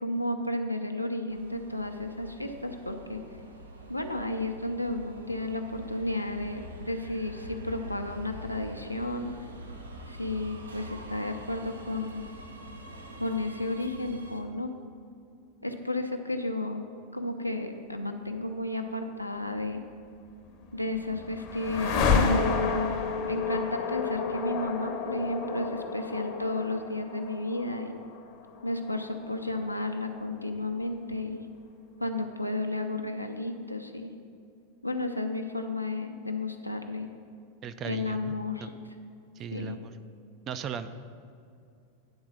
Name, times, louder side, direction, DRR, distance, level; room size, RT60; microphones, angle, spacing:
voice 1, 0.0-3.2 3.9-6.6 6.9-9.3 10.1-12.2 13.2-14.7 15.6-16.8 17.1-19.8 20.7-22.8 23.2-27.9 28.6-31.4 32.0-34.1 34.8-37.1 37.8-38.7 39.5-39.8, left 2 dB, 90° left, 5 dB, 0.5 m, -33 dB
Subway metro underground, 1.3-14.4, right 1 dB, 75° right, 0.8 m, -45 dB
Aston fly by, 20.5-30.5, left 5 dB, 40° left, 0.7 m, -31 dB
voice 2, 37.6-38.7 39.4-40.0 40.5-40.9, right 7 dB, 30° right, 11 dB, 0.4 m, -37 dB
9.5 x 3.9 x 6.1 m, 2.4 s
figure-of-eight pair, 90°, 0 cm